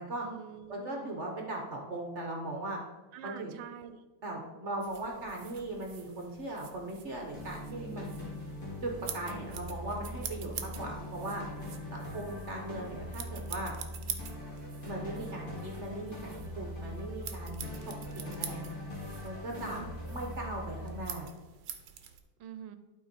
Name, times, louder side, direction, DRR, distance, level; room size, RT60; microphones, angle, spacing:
voice 1, 0.2-1.1 3.1-4.0 7.7-8.0 19.5-19.9 22.4-22.8, right 7 dB, 90° right, 10 dB, 1.3 m, -45 dB
voice 2, 0.7-2.8 3.2-3.5 4.2-8.2 8.8-11.4 11.9-13.7 14.8-18.6 19.2-21.3, right 2 dB, 45° right, 1 dB, 1.2 m, -39 dB
sound 1, 4.8-22.2, right 8 dB, 65° right, 1.2 m, -46 dB
sound 2, 7.3-21.1, left 1 dB, 30° left, 2.5 m, -42 dB
12.0 x 4.4 x 4.2 m, 1.2 s
omnidirectional pair, 1.9 m